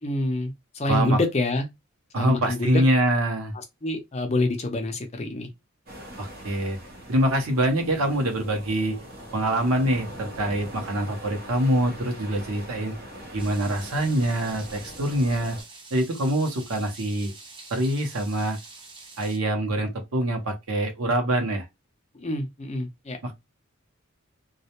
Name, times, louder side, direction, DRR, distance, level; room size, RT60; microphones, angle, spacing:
voice 1, 0.0-1.7 2.2-2.8 3.8-5.5 22.2-23.3, left 2 dB, 30° left, 0.5 m, -27 dB
voice 2, 0.9-1.2 2.1-3.5 6.2-6.8 7.1-9.0 9.3-12.9 13.3-15.6 15.9-17.3 17.7-18.6 19.2-21.6 23.2-23.3, right 1 dB, 85° right, 0.8 m, -24 dB
sound 1, 5.9-15.6, equal, 45° right, 0.8 m, -42 dB
sound 2, 13.4-19.4, right 3 dB, 20° right, 0.5 m, -46 dB
2.3 x 2.1 x 2.9 m
head